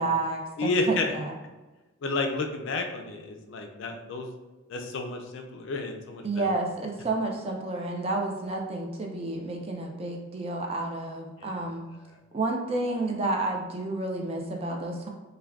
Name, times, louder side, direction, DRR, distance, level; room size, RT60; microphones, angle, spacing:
voice 1, 0.0-1.3 6.2-11.8 12.3-15.1, right 2 dB, 25° right, 1 dB, 0.3 m, -30 dB
voice 2, 0.6-1.1 2.0-4.3 4.7-6.5 11.4-11.6, left 2 dB, 60° left, 4 dB, 0.3 m, -30 dB
2.3 x 2.2 x 3.4 m, 1.1 s
head